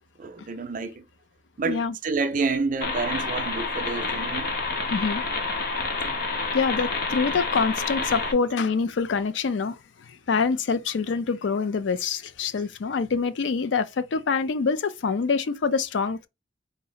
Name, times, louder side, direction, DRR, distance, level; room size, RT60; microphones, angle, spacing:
voice 1, 0.2-1.0 1.6-4.6 6.1-6.2 7.3-7.4, right 4 dB, 45° right, 0.5 m, -29 dB
voice 2, 1.6-2.0 4.9-5.2 6.5-16.3, left 5 dB, 70° left, 0.4 m, -25 dB
sound 1, 2.8-8.3, left 3 dB, 55° left, 0.8 m, -28 dB
3.8 x 2.0 x 3.9 m
head